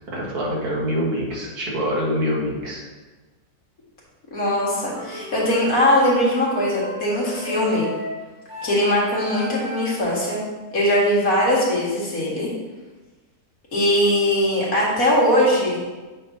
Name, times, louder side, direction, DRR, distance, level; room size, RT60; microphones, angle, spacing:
voice 1, 0.1-2.8, equal, 80° right, -4 dB, 2.1 m, -25 dB
voice 2, 4.3-7.9 8.6-10.4 10.7-12.5 13.7-15.8, left 1 dB, 65° left, -6 dB, 2.3 m, -20 dB
sound 1, 4.9-10.0, equal, 15° right, 2.0 m, -36 dB
8.4 x 6.1 x 2.8 m, 1.3 s
omnidirectional pair, 1.6 m